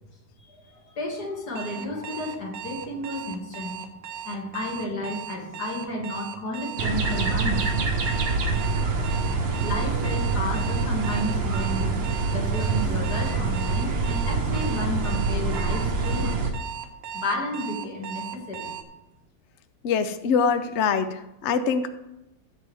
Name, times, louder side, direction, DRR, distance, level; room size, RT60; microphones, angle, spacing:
voice 1, 0.5-3.9 4.2-7.6 9.6-16.4 17.1-18.7, left 1 dB, 55° left, -1 dB, 2.6 m, -32 dB
Alarm, 1.6-18.8, right 8 dB, 60° right, 1.1 m, -38 dB
sound 1, 6.8-16.5, right 4 dB, 85° right, 1.9 m, -25 dB
voice 2, 19.8-21.9, left 6 dB, 80° left, 10 dB, 0.6 m, -24 dB
15.5 x 7.3 x 3.4 m, 0.93 s
omnidirectional pair, 2.0 m